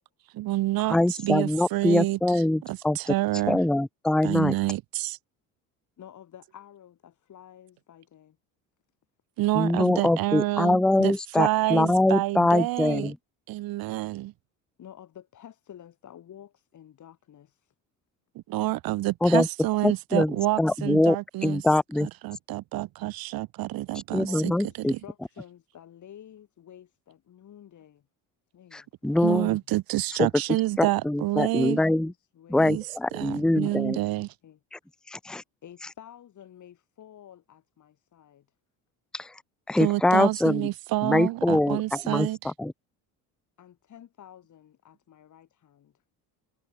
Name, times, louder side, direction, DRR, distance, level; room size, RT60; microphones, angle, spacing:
voice 1, 0.3-3.6 4.2-5.2 9.4-13.1 13.5-14.3 18.3-21.6 22.0-24.5 24.8-25.0 29.2-31.8 32.6-32.9 33.1-34.3 39.8-42.5, right 17 dB, 70° right, 1.7 m, -28 dB
voice 2, 0.9-3.0 3.5-4.5 9.5-13.1 19.2-19.5 19.8-21.2 21.4-22.1 24.1-24.9 28.7-29.5 30.2-30.3 30.8-32.1 32.5-34.0 35.1-35.4 39.1-39.3 39.7-40.6 41.0-42.7, left 1 dB, ahead, 0.7 m, -23 dB
voice 3, 6.0-8.4 14.8-17.7 23.9-28.1 28.5-29.4 30.8-32.7 33.6-34.6 35.2-35.3 35.6-38.5 43.6-45.9, left 10 dB, 50° left, 6.9 m, -50 dB
cardioid pair, 95°, 37 cm